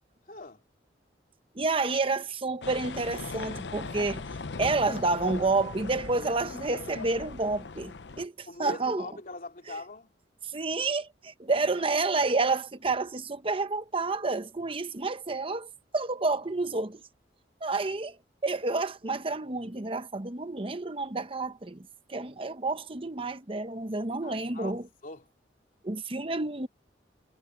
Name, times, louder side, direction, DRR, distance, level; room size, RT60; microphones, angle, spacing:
voice 1, 0.3-0.6 8.5-10.1 11.5-11.9 24.2-25.3, left 2 dB, 50° left, 2.9 m, -42 dB
voice 2, 1.5-4.2 4.6-9.1 10.5-17.0 17.6-18.2 18.4-24.9 25.8-26.7, right 3 dB, 30° right, 1.0 m, -29 dB
sound 1, 2.6-8.3, left 4 dB, 75° left, 0.8 m, -39 dB
head